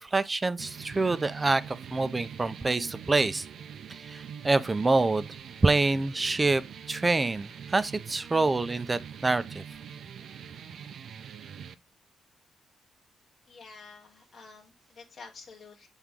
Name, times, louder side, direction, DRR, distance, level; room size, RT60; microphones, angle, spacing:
voice 1, 0.0-3.5 4.0-5.3 5.6-6.6 6.9-9.6, right 3 dB, 25° right, 0.5 m, -26 dB
sound 1, 0.6-11.7, right 8 dB, 70° right, 0.6 m, -44 dB
voice 2, 13.5-15.9, left 4 dB, 60° left, 0.9 m, -49 dB
7.4 x 3.6 x 3.5 m
cardioid pair, 80°, 0 cm